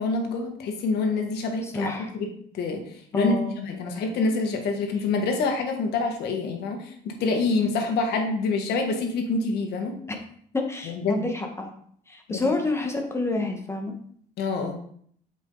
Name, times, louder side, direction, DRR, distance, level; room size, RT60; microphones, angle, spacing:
voice 1, 0.0-10.0 10.8-11.3 12.3-12.5 14.4-14.7, left 3 dB, 75° left, 3 dB, 1.7 m, -27 dB
voice 2, 1.7-2.1 3.1-3.6 10.5-11.7 12.1-13.9, left 2 dB, 15° left, 3 dB, 1.5 m, -28 dB
8.3 x 5.1 x 4.0 m, 0.62 s
cardioid pair, 110°, 17 cm